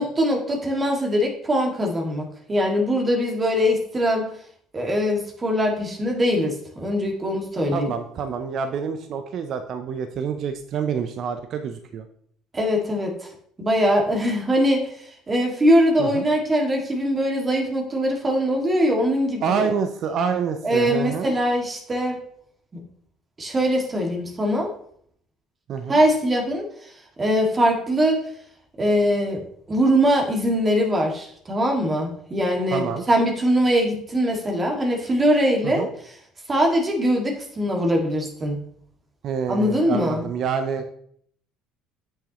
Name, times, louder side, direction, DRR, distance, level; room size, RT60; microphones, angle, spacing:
voice 1, 0.0-4.2 4.7-7.9 12.5-13.3 13.6-19.7 20.6-22.2 22.7-22.8 23.4-24.7 25.9-26.9 27.2-28.2 28.8-29.4 29.7-35.9 36.5-38.6 39.5-40.2, equal, 30° right, 1 dB, 2.0 m, -22 dB
voice 2, 7.7-12.1 16.0-16.3 19.4-21.3 25.7-26.0 32.7-33.0 35.6-35.9 39.2-40.9, right 6 dB, 55° right, 8 dB, 0.6 m, -27 dB
8.2 x 6.4 x 3.0 m, 0.64 s
hypercardioid pair, 65°, 0 cm